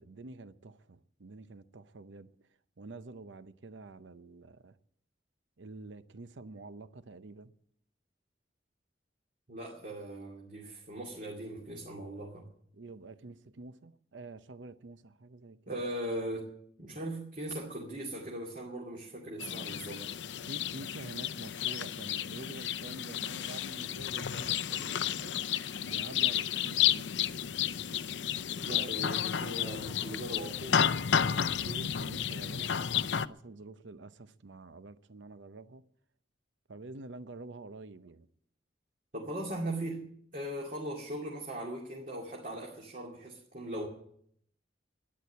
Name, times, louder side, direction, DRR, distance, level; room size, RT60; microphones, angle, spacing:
voice 1, 0.0-2.3 2.8-4.8 5.6-7.5 12.7-15.8 20.5-25.3 25.9-27.1 28.7-28.9 31.1-35.8 36.7-38.3, right 2 dB, 80° right, 0.7 m, -48 dB
voice 2, 9.5-12.5 15.7-16.5 16.8-20.1 28.6-30.9 39.1-40.1 40.3-43.9, right 1 dB, 45° right, 2.4 m, -39 dB
sound 1, 19.4-33.3, left 9 dB, 75° left, 0.5 m, -32 dB
12.5 x 10.5 x 9.5 m
head